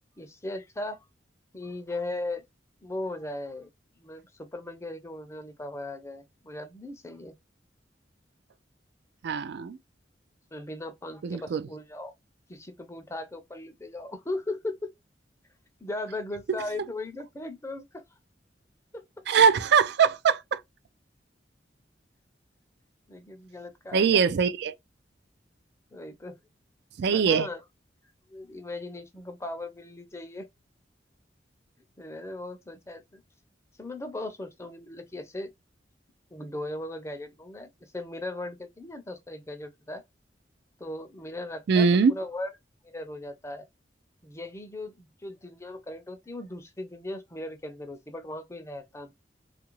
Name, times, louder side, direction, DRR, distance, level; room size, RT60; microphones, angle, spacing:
voice 1, 0.2-1.0 1.5-2.4 2.8-3.7 4.0-7.3 10.5-12.1 12.5-14.8 15.8-18.0 18.9-19.0 23.1-24.2 25.9-26.4 27.1-27.6 28.3-30.5 32.0-33.2 33.8-35.5 36.3-40.0 40.8-42.5 42.8-43.6 44.2-49.1, left 2 dB, 15° left, 0.5 m, -38 dB
voice 2, 9.2-9.8 11.2-11.6 19.3-20.6 23.9-24.7 27.0-27.5 41.7-42.1, right 6 dB, 65° right, 0.3 m, -22 dB
2.8 x 2.5 x 3.0 m
head